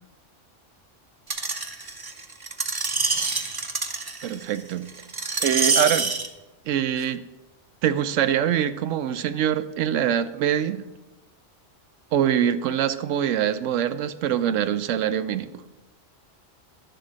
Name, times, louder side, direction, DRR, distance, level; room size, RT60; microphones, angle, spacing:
Screech, 1.3-6.3 7.0-7.1, right 3 dB, 35° right, 0.4 m, -26 dB
voice 1, 4.2-4.9 5.4-6.2 6.7-7.2 7.8-10.9 12.1-15.6, right 10 dB, 90° right, 12 dB, 0.9 m, -24 dB
11.0 x 3.8 x 7.3 m, 1.0 s
omnidirectional pair, 1.3 m